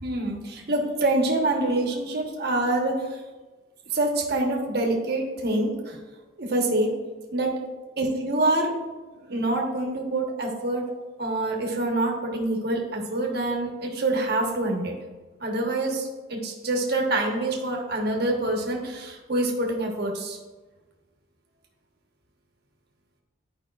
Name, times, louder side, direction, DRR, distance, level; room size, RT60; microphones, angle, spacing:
voice 1, 0.0-3.2 3.9-6.0 6.4-6.9 7.3-7.6 8.0-8.7 9.3-10.8 11.2-15.0 15.4-20.4, right 2 dB, 50° right, 0 dB, 1.2 m, -26 dB
11.0 x 5.1 x 2.4 m, 1.2 s
head